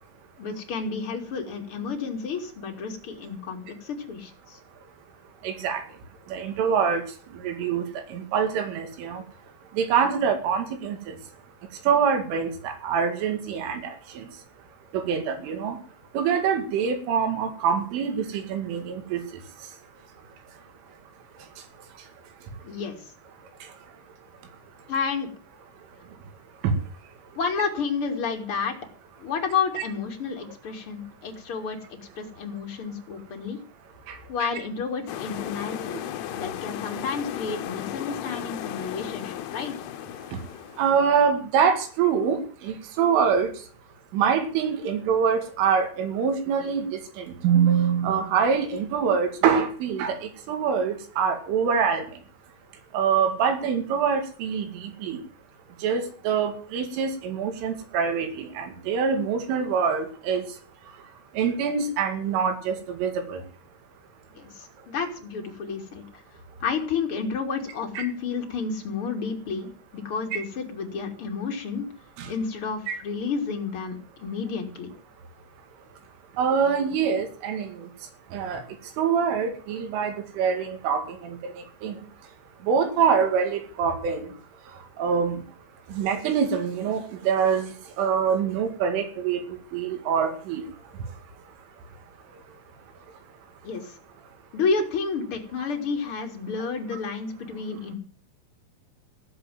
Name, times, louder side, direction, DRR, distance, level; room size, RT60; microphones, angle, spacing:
voice 1, 0.4-4.6 22.6-23.0 24.9-25.3 27.3-28.7 29.2-33.6 34.3-36.0 36.3-39.7 64.4-66.0 66.6-71.9 72.3-74.9 93.6-94.0 94.5-97.9, left 5 dB, 35° left, 2 dB, 2.6 m, -30 dB
voice 2, 5.4-5.9 6.3-7.1 7.3-9.2 9.7-11.2 11.8-14.3 14.9-15.8 16.1-19.4 23.6-23.7 26.6-26.8 34.1-34.5 40.3-40.4 40.8-43.6 44.1-52.2 52.9-55.2 55.8-60.4 61.3-63.4 68.0-68.1 72.2-72.3 72.9-73.0 76.4-77.9 78.3-78.6 79.0-82.1 82.6-84.3 85.0-85.4 85.9-90.7, right 6 dB, 85° right, 6 dB, 4.8 m, -25 dB
sound 1, 35.1-41.0, left 11 dB, 75° left, 2.8 m, -35 dB
16.0 x 7.6 x 9.3 m, 0.43 s
omnidirectional pair, 5.5 m